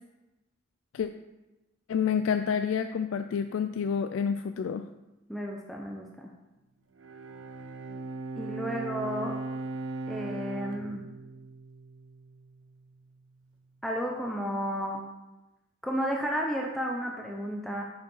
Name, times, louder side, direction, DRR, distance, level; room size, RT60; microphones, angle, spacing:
voice 1, 1.9-4.8, left 7 dB, 70° left, 9 dB, 0.3 m, -28 dB
voice 2, 5.3-6.3 8.4-9.4 10.1-11.0 13.8-15.0 15.8-17.8, equal, ahead, -1 dB, 0.6 m, -32 dB
Bowed string instrument, 7.0-12.5, right 3 dB, 70° right, 0.7 m, -38 dB
6.3 x 4.9 x 5.5 m, 1.0 s
head